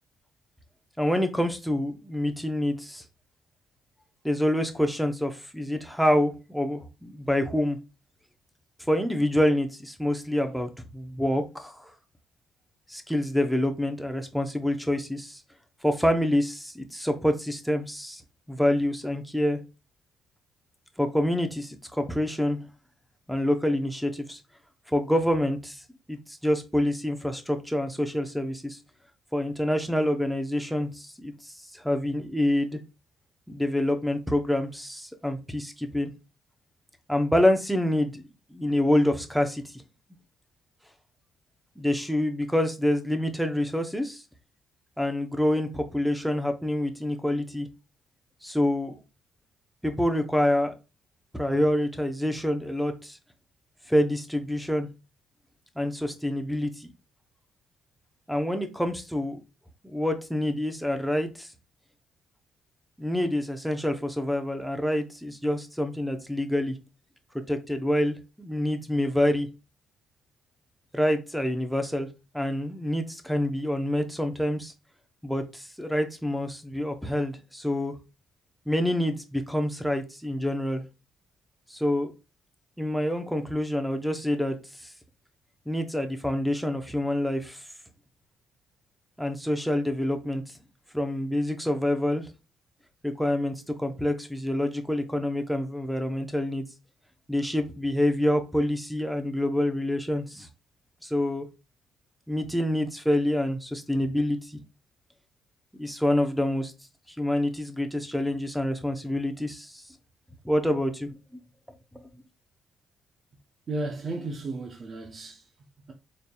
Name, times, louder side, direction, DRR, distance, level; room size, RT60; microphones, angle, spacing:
voice 1, 1.0-3.0 4.2-7.8 8.9-11.9 12.9-15.4 15.8-18.2 18.5-19.6 21.0-22.6 23.3-24.4 24.9-25.8 26.1-28.8 29.3-32.8 33.5-36.1 37.1-39.6 41.8-44.2 45.0-47.7 48.4-49.0 49.8-50.7 51.3-53.2 53.9-54.9 55.8-56.9 58.3-59.4 59.8-61.5 63.0-66.8 67.5-69.5 70.9-72.1 72.3-74.7 75.2-78.0 78.7-80.8 81.7-82.1 82.8-84.5 85.7-87.6 89.2-90.4 90.9-92.3 93.0-96.6 97.3-100.5 101.0-101.4 102.3-104.6 105.8-106.7 107.1-109.8 110.4-111.1, left 1 dB, ahead, 0.8 m, -27 dB
voice 2, 113.7-115.9, right 2 dB, 45° right, 0.7 m, -34 dB
4.2 x 3.3 x 2.3 m
cardioid pair, 90°, 0 cm